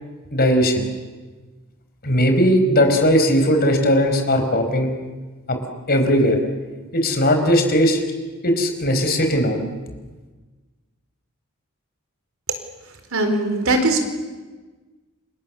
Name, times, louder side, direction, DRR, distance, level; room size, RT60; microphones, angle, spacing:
voice 1, 0.3-0.9 2.0-4.9 5.5-5.6 5.9-6.4 6.9-8.0 8.4-9.6, equal, 45° left, 5 dB, 4.8 m, -18 dB
voice 2, 13.1-14.1, right 2 dB, 65° right, 6 dB, 4.2 m, -20 dB
30.0 x 27.0 x 7.2 m, 1.3 s
head